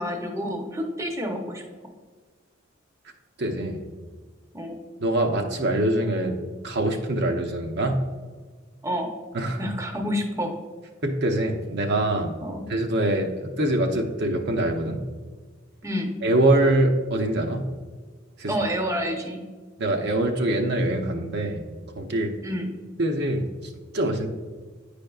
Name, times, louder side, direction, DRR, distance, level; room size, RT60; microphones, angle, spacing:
voice 1, 0.0-1.6 4.5-4.7 8.8-9.1 9.6-10.5 12.4-12.6 15.8-16.1 18.5-19.4 22.4-22.7, equal, 15° right, 2 dB, 0.7 m, -28 dB
voice 2, 3.4-3.8 5.0-6.4 6.6-8.0 9.3-9.6 11.0-12.4 12.7-15.0 16.2-17.7 18.4-18.6 19.8-21.6 22.0-22.3 23.0-24.3, right 1 dB, 55° right, 3 dB, 0.6 m, -24 dB
9.1 x 5.1 x 2.3 m, 1.4 s
head